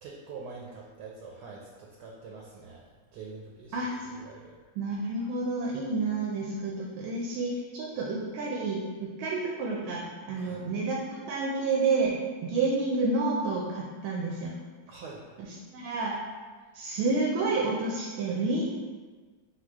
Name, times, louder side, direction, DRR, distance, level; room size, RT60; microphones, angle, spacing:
voice 1, 0.0-2.9 3.1-3.8 4.0-4.6 10.4-10.6 14.9-15.2, right 4 dB, 70° right, -2 dB, 1.0 m, -45 dB
voice 2, 3.7-4.2 4.8-14.5 15.4-16.2 16.7-18.6, right 3 dB, 90° right, -2 dB, 1.4 m, -30 dB
4.3 x 2.3 x 4.6 m, 1.4 s
omnidirectional pair, 2.2 m